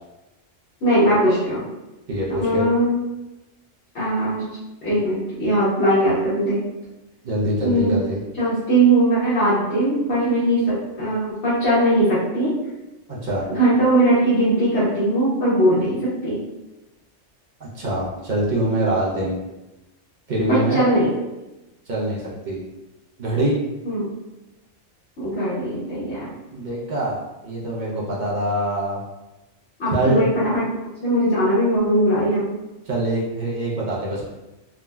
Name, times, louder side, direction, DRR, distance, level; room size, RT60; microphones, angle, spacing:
voice 1, 0.8-1.6 2.4-2.9 3.9-4.4 4.8-6.6 7.6-8.0 8.4-10.6 11.0-12.5 13.5-16.0 16.2-16.4 20.5-21.1 23.8-24.1 25.2-26.3 29.8-30.6 31.0-32.5, right 1 dB, 65° left, -12 dB, 1.1 m, -19 dB
voice 2, 2.1-2.6 7.2-8.2 13.1-13.4 17.6-19.4 20.3-20.8 21.9-22.6 23.2-23.5 26.5-29.0 29.9-30.2 32.9-34.3, right 1 dB, 50° right, -5 dB, 0.6 m, -24 dB
3.5 x 2.0 x 2.2 m, 1.0 s
omnidirectional pair, 1.2 m